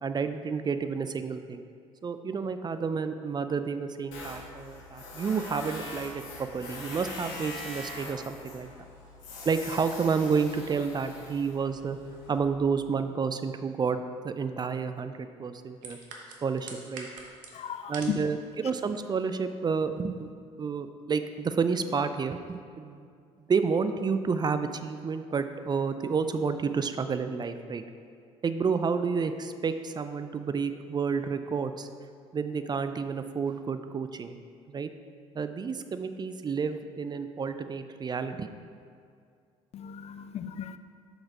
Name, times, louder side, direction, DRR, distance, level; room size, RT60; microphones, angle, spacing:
voice 1, 0.0-1.6 2.0-8.7 9.4-12.0 12.3-14.0 14.2-16.0 16.4-17.1 17.9-20.3 20.6-23.1 23.5-27.8 28.4-31.9 32.3-34.4 34.7-34.9 35.4-38.5, right 5 dB, 30° right, 10 dB, 0.4 m, -30 dB
Tools, 4.1-12.4, left 2 dB, 75° left, 1.6 m, -42 dB
sound 1, 15.8-18.3 18.5-19.0 19.4-19.5, right 4 dB, 60° right, 1.0 m, -44 dB
voice 2, 17.5-18.2 39.7-40.8, left 10 dB, 45° left, 11 dB, 0.4 m, -36 dB
6.2 x 4.9 x 4.9 m, 2.3 s
hypercardioid pair, 55°, 15 cm